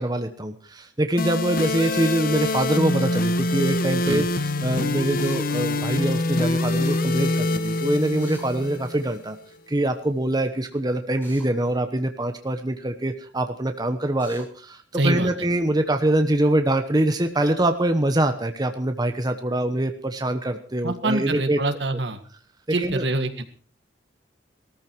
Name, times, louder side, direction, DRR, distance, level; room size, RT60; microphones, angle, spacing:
voice 1, 0.0-9.4 9.7-21.6 22.7-23.0, right 1 dB, 20° right, 7 dB, 1.0 m, -24 dB
sound 1, 1.2-9.2, left 2 dB, 50° left, 1.0 m, -25 dB
Drill, 5.2-5.4 8.2-8.5 11.2-11.5 14.2-14.5, equal, 10° left, 6.6 m, -45 dB
voice 2, 15.0-15.3 20.8-22.2 22.7-23.4, right 2 dB, 65° right, 8 dB, 1.8 m, -25 dB
17.5 x 14.0 x 4.6 m, 0.42 s
head